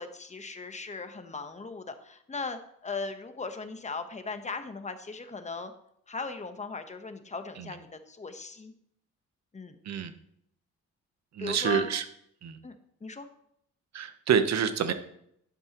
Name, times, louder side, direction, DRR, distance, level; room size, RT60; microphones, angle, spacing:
voice 1, 0.0-5.7 6.1-8.7 9.5-9.8 11.4-11.9 12.6-12.7 13.0-13.3, left 4 dB, 25° left, 8 dB, 1.1 m, -38 dB
voice 2, 11.3-12.0 12.4-12.6 13.9-14.9, right 7 dB, 60° right, 10 dB, 1.1 m, -27 dB
11.0 x 9.7 x 3.1 m, 0.71 s
cardioid pair, 90°, 30 cm